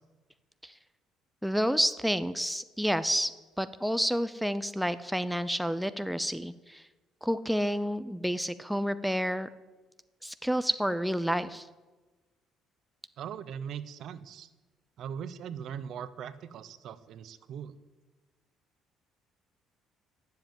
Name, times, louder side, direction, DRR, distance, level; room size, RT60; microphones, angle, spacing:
voice 1, 1.4-3.3 3.6-6.8 7.2-9.5 10.2-11.7, equal, ahead, 12 dB, 0.4 m, -29 dB
voice 2, 13.2-14.5 15.0-17.8, right 8 dB, 60° right, 14 dB, 0.7 m, -40 dB
10.5 x 7.4 x 9.2 m, 1.2 s
cardioid pair, 130°, 0 cm